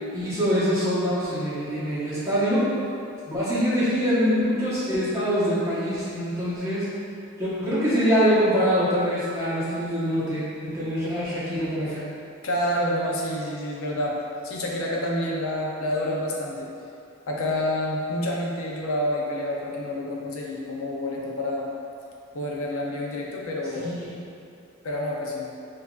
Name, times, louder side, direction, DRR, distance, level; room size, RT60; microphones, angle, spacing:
voice 1, 0.1-2.6 3.3-6.9 7.4-12.0 23.7-24.1, equal, 15° right, -12 dB, 1.1 m, -24 dB
voice 2, 12.4-14.2 14.4-16.7 17.3-21.7 22.3-23.9 24.8-25.5, left 1 dB, 70° left, -2 dB, 0.5 m, -28 dB
6.7 x 2.5 x 2.4 m, 2.5 s
head